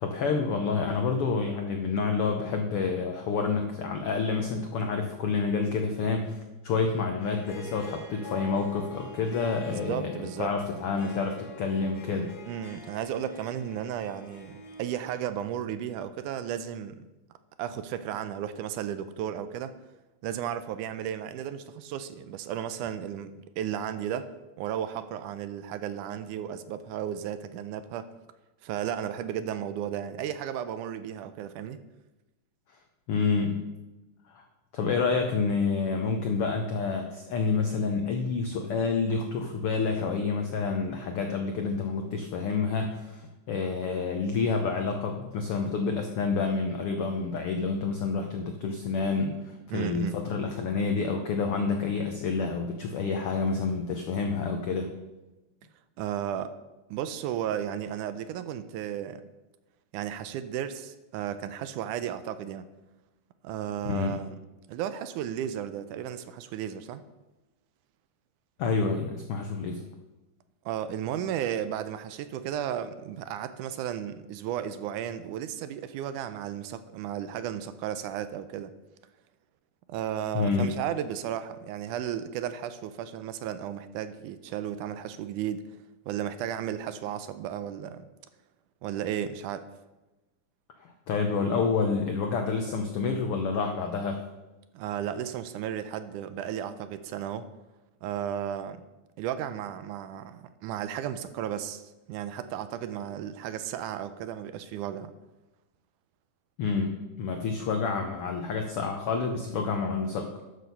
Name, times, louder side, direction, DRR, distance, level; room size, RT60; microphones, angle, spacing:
voice 1, 0.0-12.3 33.1-33.7 34.3-34.4 34.7-54.9 63.8-64.2 68.6-69.8 80.3-80.7 90.8-94.2 106.6-110.3, left 4 dB, 85° left, 4 dB, 1.2 m, -28 dB
Harp, 7.2-15.2, left 2 dB, 45° left, 1.3 m, -45 dB
voice 2, 9.3-10.5 12.5-17.0 17.6-19.7 20.2-24.3 24.6-28.1 28.6-31.8 49.7-50.2 56.0-56.5 56.9-59.2 59.9-62.7 63.4-64.4 64.7-67.0 70.7-78.7 79.9-85.7 86.1-88.1 88.8-89.7 94.8-97.5 98.0-98.9 99.2-105.1, right 10 dB, 80° right, 12 dB, 2.0 m, -34 dB
12.0 x 6.5 x 5.4 m, 1.1 s
omnidirectional pair, 3.8 m